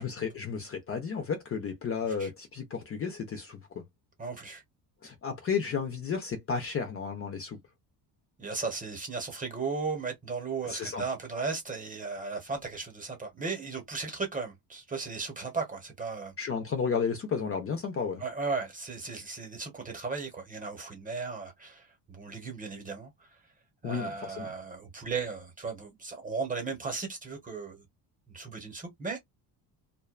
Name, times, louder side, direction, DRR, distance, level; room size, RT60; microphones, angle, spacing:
voice 1, 0.0-3.6 5.0-7.6 10.6-11.0 16.4-18.2 23.8-24.5, left 6 dB, 35° left, 0.6 m, -32 dB
voice 2, 4.2-4.6 8.4-16.3 18.2-23.3 23.8-27.8 28.3-29.2, right 4 dB, 20° right, 1.0 m, -36 dB
2.5 x 2.2 x 2.4 m
cardioid pair, 135°, 42 cm